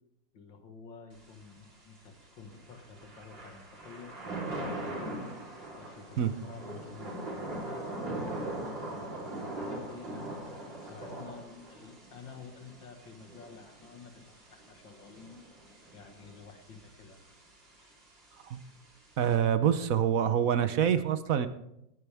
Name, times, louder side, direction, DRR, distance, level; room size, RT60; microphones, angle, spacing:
voice 1, 0.3-5.4 5.8-8.1 8.9-15.4 15.9-17.2 17.8-17.9, left 5 dB, 80° left, 5 dB, 2.3 m, -50 dB
Thunder / Rain, 1.1-19.4, right 1 dB, 75° right, 4.5 m, -42 dB
voice 2, 19.2-21.5, right 9 dB, 60° right, 11 dB, 1.0 m, -26 dB
18.5 x 10.5 x 3.5 m, 0.81 s
omnidirectional pair, 2.0 m